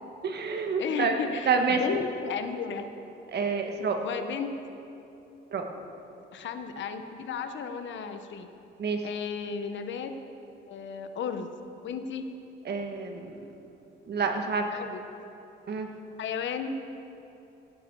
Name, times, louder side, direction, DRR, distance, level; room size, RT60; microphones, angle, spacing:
voice 1, 0.2-1.2 1.5-1.8 3.3-4.0 5.5-5.6 8.8-9.0 12.6-13.4 14.1-14.7 15.7-15.9, right 5 dB, 55° right, 4 dB, 1.6 m, -28 dB
voice 2, 0.8-2.9 4.0-4.5 6.3-8.5 9.0-10.1 10.7-11.5 11.8-12.3 14.7-15.0 16.2-16.8, left 6 dB, 70° left, 8 dB, 1.1 m, -34 dB
16.5 x 12.5 x 4.8 m, 2.9 s
cardioid pair, 90°, 20 cm